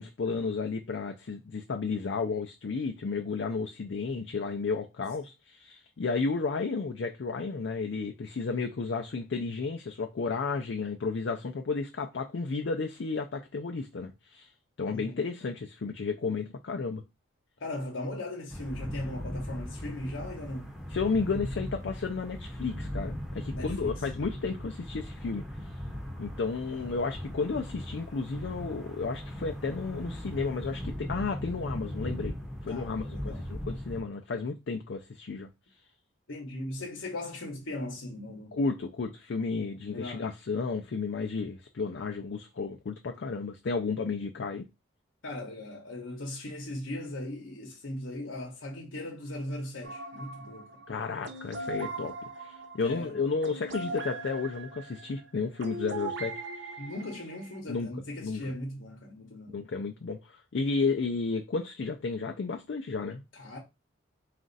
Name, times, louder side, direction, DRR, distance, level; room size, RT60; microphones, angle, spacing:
voice 1, 0.0-14.5 14.8-17.0 20.9-25.7 26.2-32.4 32.6-35.5 38.5-44.7 50.9-56.7 57.7-57.9 58.2-58.4 59.5-63.2, left 4 dB, 65° left, 0.4 m, -32 dB
voice 2, 14.9-15.2 17.6-20.7 23.5-23.9 26.7-26.9 32.6-33.5 36.3-38.6 39.9-40.3 45.2-50.7 52.8-53.2 56.8-59.6 63.3-63.6, left 1 dB, 85° left, 0.9 m, -38 dB
sound 1, 18.5-34.0, equal, ahead, 0.8 m, -38 dB
sound 2, 49.8-57.6, right 2 dB, 65° right, 0.8 m, -40 dB
4.2 x 2.5 x 3.9 m
head